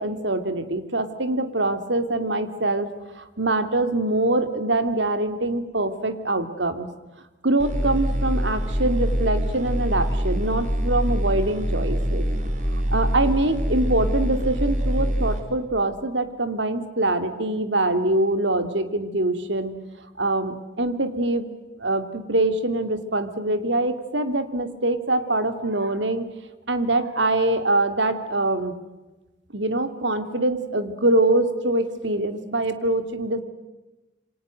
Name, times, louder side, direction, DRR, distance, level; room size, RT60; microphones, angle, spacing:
voice 1, 0.0-2.9 3.1-6.9 7.4-12.3 12.7-19.7 20.2-21.5 21.8-26.3 26.7-28.8 29.5-33.4, right 2 dB, 80° right, 9 dB, 2.8 m, -24 dB
sound 1, 7.6-15.4, equal, 45° right, 4.4 m, -24 dB
28.0 x 25.5 x 7.8 m, 1.1 s
head